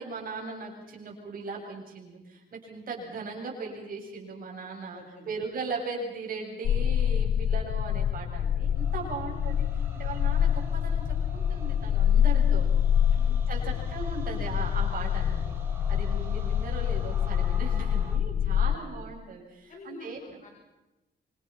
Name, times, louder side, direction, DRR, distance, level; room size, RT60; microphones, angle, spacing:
voice 1, 0.0-12.7 13.5-15.5 15.9-20.2, right 4 dB, 50° right, 0 dB, 7.5 m, -38 dB
voice 2, 4.9-5.3 9.0-9.5 12.4-12.7 13.1-13.9 18.6-19.1 19.7-20.5, left 2 dB, 45° left, 2 dB, 5.4 m, -49 dB
sound 1, 6.6-18.8, left 9 dB, 75° left, 1.0 m, -26 dB
sound 2, 8.6-18.2, right 3 dB, 15° right, 4.2 m, -49 dB
27.0 x 26.0 x 6.0 m, 1.0 s
wide cardioid pair, 175°, 18 cm